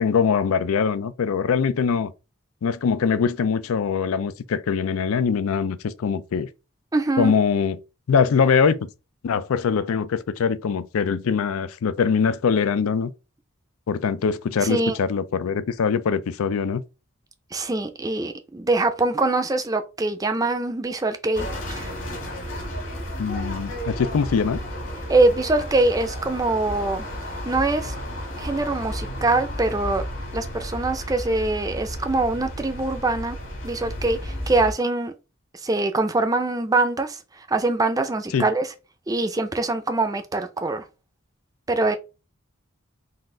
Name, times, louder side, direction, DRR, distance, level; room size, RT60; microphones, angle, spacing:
voice 1, 0.0-2.1 2.6-6.5 7.2-7.8 8.1-8.9 9.2-13.1 13.9-16.8 23.2-24.6 38.3-38.5, left 6 dB, 85° left, 0.4 m, -22 dB
voice 2, 6.9-7.3 14.6-15.0 17.5-21.9 25.1-27.1 27.5-27.9 28.4-30.0 30.3-33.4 33.6-35.1 35.6-37.2 37.5-38.7 39.1-40.9 41.7-42.0, right 2 dB, 15° right, 0.5 m, -23 dB
sound 1, 21.3-34.7, equal, 60° left, 1.7 m, -33 dB
4.0 x 2.4 x 3.7 m
head